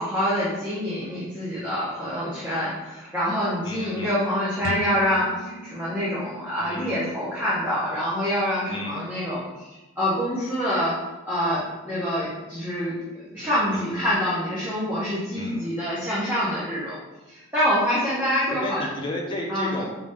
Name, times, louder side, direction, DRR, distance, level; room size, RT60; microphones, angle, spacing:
voice 1, 0.0-10.9 11.2-16.9 17.3-18.9 19.5-19.7, equal, 10° right, -10 dB, 0.9 m, -26 dB
voice 2, 3.6-4.2 6.6-7.0 8.7-9.0 13.4-14.1 15.3-15.7 18.5-19.9, left 1 dB, 25° left, -2 dB, 0.7 m, -33 dB
sound 1, 4.6-8.4, left 4 dB, 70° left, 0.3 m, -39 dB
4.8 x 2.8 x 3.4 m, 1.1 s
head